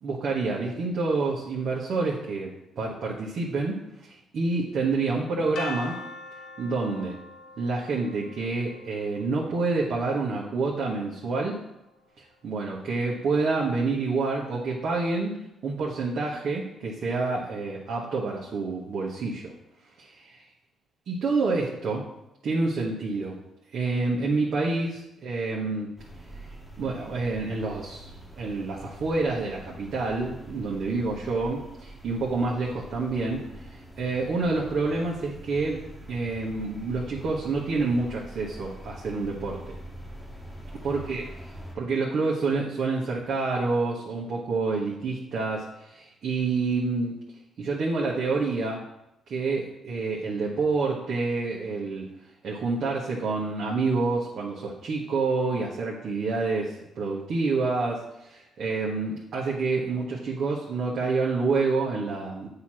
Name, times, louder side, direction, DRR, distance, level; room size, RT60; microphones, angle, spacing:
voice 1, 0.0-6.0 6.6-7.2 7.6-11.6 12.2-15.4 15.6-19.5 21.1-22.1 22.4-23.4 23.7-25.9 26.8-28.1 28.3-33.5 34.0-39.8 40.8-41.2 41.7-47.2 47.6-48.8 49.3-52.1 52.4-62.5, right 3 dB, 60° right, -4 dB, 1.2 m, -28 dB
sound 1, 5.6-11.5, left 4 dB, 80° left, 0.9 m, -43 dB
sound 2, 26.0-41.8, right 1 dB, ahead, 1.3 m, -44 dB
8.2 x 2.9 x 6.1 m, 0.88 s
cardioid pair, 90°, 0 cm